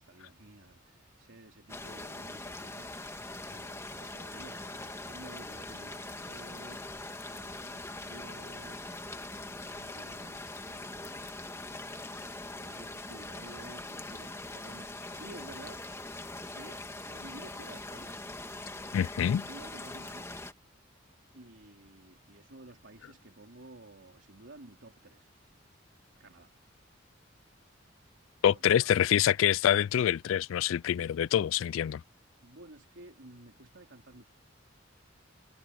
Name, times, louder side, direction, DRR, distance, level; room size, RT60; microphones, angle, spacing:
voice 1, 0.0-11.3 11.6-15.8 16.5-16.8 17.1-18.2 19.5-20.3 21.3-25.3 26.2-26.5 28.4-28.9 32.4-34.2, right 2 dB, 70° right, 3.1 m, -53 dB
sound 1, 1.7-20.5, left 2 dB, 15° left, 1.8 m, -42 dB
voice 2, 18.9-19.4 28.4-32.0, left 10 dB, 85° left, 0.3 m, -26 dB
head